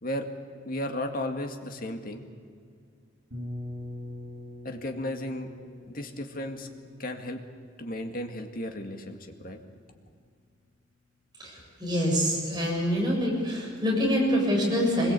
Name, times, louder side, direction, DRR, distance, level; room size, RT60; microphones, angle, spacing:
voice 1, 0.6-2.2 4.6-5.5 5.9-6.7 7.0-7.4 7.8-9.6, left 1 dB, 45° left, 5 dB, 2.2 m, -34 dB
sound 1, 3.3-9.1, left 1 dB, 75° right, 5.3 m, -43 dB
voice 2, 11.4-15.1, equal, 20° right, -2 dB, 7.4 m, -26 dB
24.5 x 21.5 x 8.5 m, 2.2 s
head